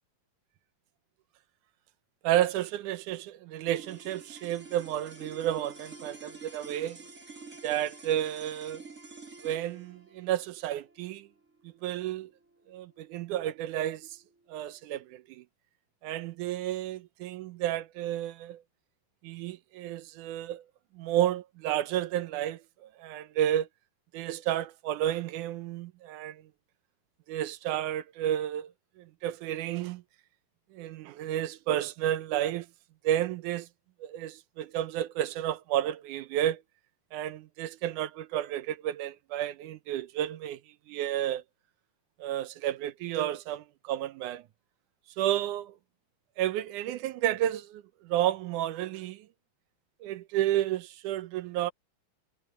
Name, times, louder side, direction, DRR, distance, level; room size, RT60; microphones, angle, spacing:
voice 1, 2.2-7.0 7.6-8.8 9.4-11.3 11.6-12.3 12.7-14.2 14.5-15.4 16.0-18.6 19.2-20.6 20.9-23.7 24.1-26.4 27.3-30.0 30.7-32.7 33.0-33.7 34.0-36.6 37.1-40.6 40.9-41.4 42.2-44.5 45.2-45.8 46.4-49.3 50.0-51.7, right 12 dB, 75° right, 2.1 m, -31 dB
sound 1, 3.6-14.1, right 4 dB, 25° right, 3.6 m, -49 dB
omnidirectional pair, 3.9 m